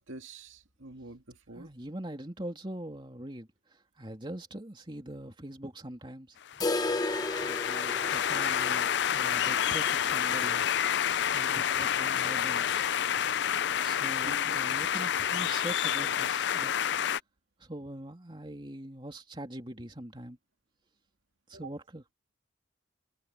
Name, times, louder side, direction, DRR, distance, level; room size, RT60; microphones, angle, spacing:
voice 1, 0.0-1.7 14.2-14.6 21.5-21.7, right 2 dB, 85° right, 2.3 m, -46 dB
voice 2, 1.5-3.5 4.0-6.4 7.4-11.1 11.3-12.7 13.8-16.7 17.6-20.4 21.5-22.1, right 1 dB, 25° right, 3.1 m, -42 dB
sound 1, 6.5-17.2, left 9 dB, 60° left, 0.4 m, -29 dB
sound 2, 6.6-12.4 12.7-12.8 13.2-13.3 13.8-13.9 14.7-14.8, left 2 dB, 20° left, 0.9 m, -36 dB
head